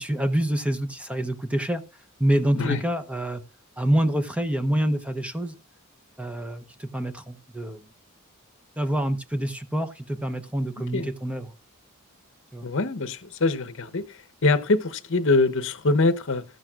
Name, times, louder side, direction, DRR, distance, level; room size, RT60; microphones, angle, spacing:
voice 1, 0.0-1.8 2.2-3.4 3.8-5.5 6.2-7.8 8.8-11.5 12.5-12.7, right 1 dB, 5° right, 0.7 m, -26 dB
voice 2, 12.6-16.4, left 3 dB, 60° left, 0.9 m, -23 dB
14.0 x 10.5 x 2.4 m
head